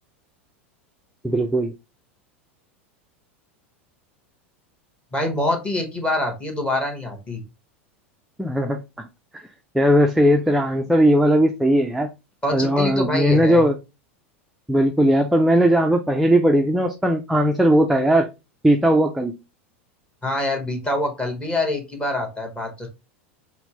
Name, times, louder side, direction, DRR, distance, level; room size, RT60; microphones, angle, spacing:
voice 1, 1.2-1.7 8.4-9.1 9.3-9.5 9.7-12.1 12.5-13.8 14.7-18.3 18.6-19.4, equal, ahead, 4 dB, 0.4 m, -18 dB
voice 2, 5.1-7.4 12.4-13.6 20.2-22.9, left 1 dB, 15° left, 2 dB, 1.2 m, -25 dB
4.1 x 2.0 x 2.9 m, 0.25 s
hypercardioid pair, 95°, 7 cm